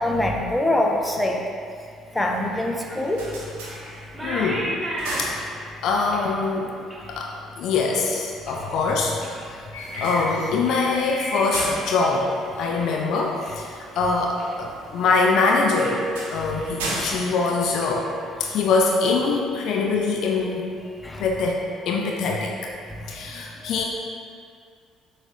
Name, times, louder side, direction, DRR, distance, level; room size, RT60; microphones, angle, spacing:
voice 1, 0.0-1.4 2.1-3.2 21.0-21.2, left 1 dB, 15° left, 0 dB, 0.6 m, -23 dB
sound 1, 2.1-8.8 9.1-9.6 9.9-12.3 12.6-13.1 13.4-13.5 13.9-14.7 15.0-15.4 15.8-16.0 16.3-16.7 16.9-18.8, equal, 20° right, 1.3 m, -37 dB
sound 2, 3.0-4.4 4.7-6.1 9.8-13.3 15.4-18.5, right 1 dB, 75° right, 0.7 m, -35 dB
voice 2, 4.2-4.7 5.2-5.3 5.8-6.7 7.1-9.6 9.9-12.3 12.6-18.1 18.4-20.7 21.2-22.5 23.1-23.8, left 4 dB, 60° left, 0 dB, 0.4 m, -23 dB
sound 3, 9.7-17.4, left 1 dB, 80° left, 1.4 m, -39 dB
6.0 x 3.2 x 2.6 m, 2.2 s
figure-of-eight pair, 50°, 0 cm